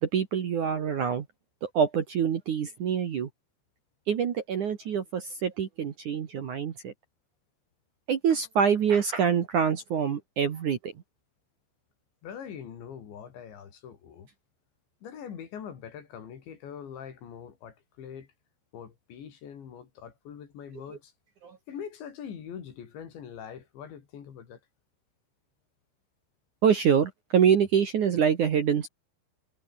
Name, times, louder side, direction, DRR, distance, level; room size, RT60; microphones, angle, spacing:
voice 1, 0.0-1.3 1.6-3.3 4.1-6.9 8.1-10.9 21.4-21.6 26.6-28.9, right 7 dB, 55° right, 2.5 m, -25 dB
voice 2, 12.2-14.3 15.0-18.3 18.7-21.1 21.7-24.6, left 8 dB, 65° left, 5.6 m, -43 dB
omnidirectional pair, 5.5 m